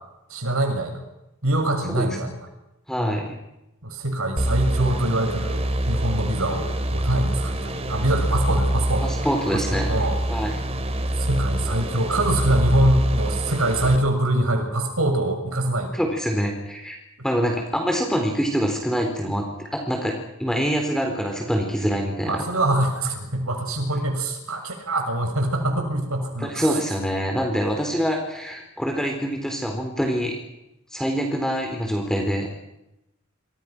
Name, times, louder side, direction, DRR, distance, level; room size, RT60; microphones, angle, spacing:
voice 1, 0.3-1.0 1.4-2.5 3.8-9.1 9.9-10.2 11.2-15.9 22.3-26.7, right 1 dB, 85° right, 4 dB, 7.1 m, -24 dB
voice 2, 2.9-3.3 9.0-9.9 10.3-10.5 15.9-17.0 17.2-20.1 20.4-22.4 26.4-30.4 30.9-32.5, equal, 5° left, 2 dB, 4.1 m, -25 dB
sound 1, 4.4-14.0, right 1 dB, 30° right, 2.4 m, -25 dB
27.0 x 26.0 x 6.2 m, 0.90 s
head